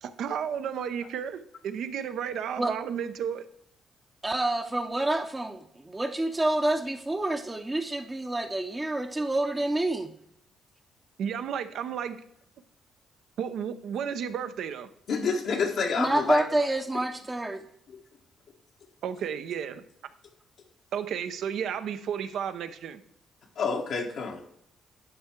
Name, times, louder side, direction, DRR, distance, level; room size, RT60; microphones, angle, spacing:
voice 1, 0.0-3.5 11.2-12.2 13.4-14.9 19.0-19.9 20.9-23.0, right 8 dB, 75° right, 10 dB, 0.7 m, -33 dB
voice 2, 4.2-10.1 16.0-17.7, right 2 dB, 15° right, 5 dB, 0.7 m, -28 dB
voice 3, 15.1-16.4 17.9-18.0 23.6-24.4, left 5 dB, 70° left, 0 dB, 1.2 m, -28 dB
11.0 x 4.6 x 4.5 m, 0.72 s
cardioid pair, 90°, 0 cm